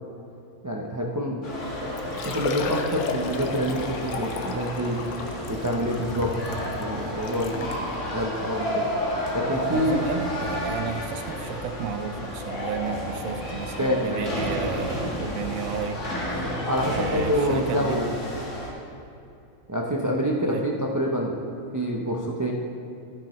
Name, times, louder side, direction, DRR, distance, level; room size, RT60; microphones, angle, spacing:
voice 1, 0.6-1.4 1.8-5.0 5.5-8.9 9.3-10.0 13.8-14.4 16.4-18.1 19.7-21.4 21.7-22.5, equal, 25° right, -1 dB, 0.4 m, -27 dB
sound 1, 1.4-18.7, left 1 dB, 55° left, 2.0 m, -32 dB
Liquid, 1.5-1.6 2.0-7.9 8.6-8.7 9.1-9.2 10.8-10.9 11.1-11.2, left 5 dB, 90° left, 1.2 m, -35 dB
voice 2, 9.7-16.0 16.8-18.0 20.4-20.6, right 7 dB, 75° right, 8 dB, 1.1 m, -33 dB
12.0 x 9.6 x 3.1 m, 2.7 s
omnidirectional pair, 1.5 m